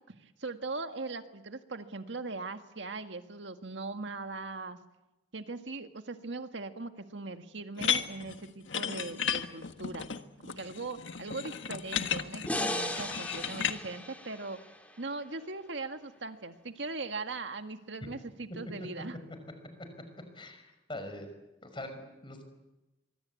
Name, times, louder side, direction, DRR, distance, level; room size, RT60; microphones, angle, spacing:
voice 1, 0.1-4.8 5.3-14.6 15.0-19.2, right 3 dB, 75° right, 7 dB, 1.8 m, -40 dB
sound 1, 7.8-13.8, left 8 dB, 85° left, 1.5 m, -34 dB
sound 2, 12.5-15.7, left 1 dB, 10° left, 3.3 m, -37 dB
voice 2, 20.3-21.3 21.6-22.4, left 1 dB, 25° left, 7 dB, 5.5 m, -43 dB
24.5 x 24.0 x 8.5 m, 1.0 s
head